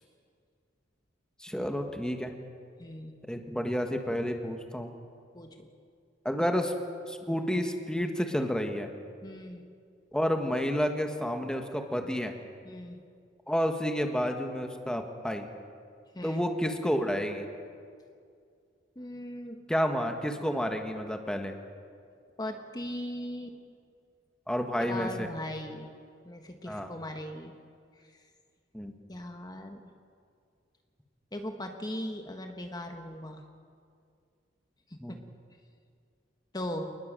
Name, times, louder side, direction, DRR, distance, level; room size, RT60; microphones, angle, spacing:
voice 1, 1.4-2.3 3.3-4.9 6.2-6.7 7.1-8.9 10.1-12.3 13.5-15.5 16.2-17.5 19.7-21.5 24.5-25.3 26.7-26.9 28.7-28.9 35.0-35.2, equal, 5° left, 4 dB, 1.6 m, -30 dB
voice 2, 2.8-3.2 5.3-5.7 9.2-9.7 12.6-13.0 16.1-16.4 18.9-19.6 22.4-23.5 24.8-25.9 26.2-27.6 28.0-28.2 29.1-29.9 31.3-33.4 34.9-35.2 36.5-36.8, left 1 dB, 20° left, 5 dB, 1.5 m, -39 dB
27.0 x 20.0 x 7.6 m, 2.3 s
head